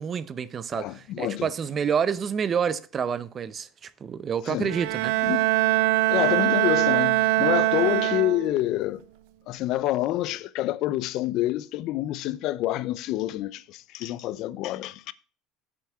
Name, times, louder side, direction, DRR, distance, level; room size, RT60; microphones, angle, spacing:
voice 1, 0.0-5.3, right 7 dB, 30° right, 0.6 m, -28 dB
voice 2, 0.7-1.5 4.5-4.7 5.2-5.4 6.1-9.0 9.5-15.1, left 15 dB, 60° left, 0.5 m, -27 dB
Bowed string instrument, 4.6-8.7, right 17 dB, 80° right, 0.5 m, -23 dB
7.5 x 5.8 x 6.0 m
supercardioid pair, 120°, 0 cm